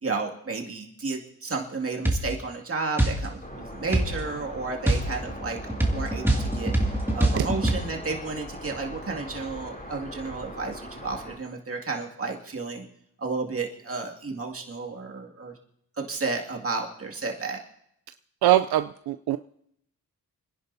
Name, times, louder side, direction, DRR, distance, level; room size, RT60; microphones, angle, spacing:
voice 1, 0.0-5.6 5.9-6.7 7.1-12.9 13.2-15.5 16.0-17.6, right 4 dB, 35° right, 0 dB, 2.3 m, -32 dB
sound 1, 2.1-2.3 3.0-3.2 3.9-4.2 4.9-7.8, right 1 dB, 5° right, 2.2 m, -24 dB
sound 2, 3.4-11.4, equal, 25° left, 3.0 m, -40 dB
voice 2, 18.4-19.4, right 13 dB, 80° right, 10 dB, 0.5 m, -22 dB
30.0 x 10.5 x 2.7 m, 0.74 s
cardioid pair, 90°, 38 cm